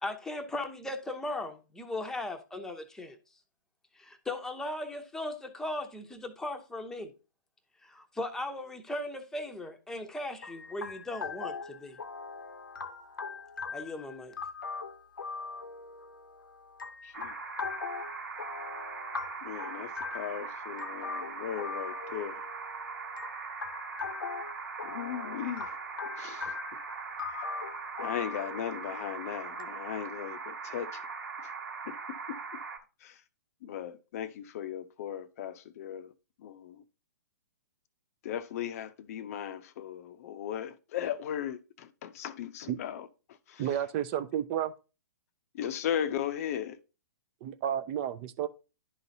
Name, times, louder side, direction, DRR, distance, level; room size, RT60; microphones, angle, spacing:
voice 1, 0.0-3.2 4.0-7.1 7.8-12.0 13.7-14.3, left 1 dB, 5° left, 0.8 m, -37 dB
sound 1, 10.4-29.6, left 5 dB, 85° left, 0.7 m, -41 dB
voice 2, 17.0-17.4 19.4-22.4 24.8-25.8 26.2-26.6 28.0-31.1 31.4-31.5 31.8-32.6 33.0-33.2 33.6-36.1 36.4-36.8 38.2-43.8 45.5-46.8, left 10 dB, 50° left, 0.6 m, -37 dB
sound 2, 17.1-32.8, right 5 dB, 75° right, 1.3 m, -41 dB
voice 3, 43.6-44.7 47.4-48.5, right 10 dB, 35° right, 0.5 m, -31 dB
11.0 x 4.0 x 2.7 m
hypercardioid pair, 125°, 11 cm